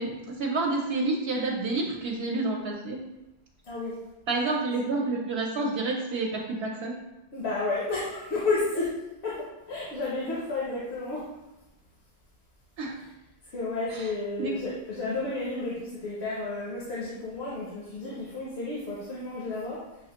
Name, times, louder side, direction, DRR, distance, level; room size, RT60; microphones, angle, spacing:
voice 1, 0.0-3.0 4.3-6.9 12.8-13.0 13.9-14.1 14.4-14.5, right 3 dB, 80° right, -1 dB, 0.8 m, -29 dB
voice 2, 7.3-8.9 9.2-11.3 13.0-13.1 13.5-19.8, left 3 dB, 80° left, -6 dB, 1.1 m, -31 dB
6.1 x 2.4 x 2.9 m, 0.95 s
omnidirectional pair, 1.1 m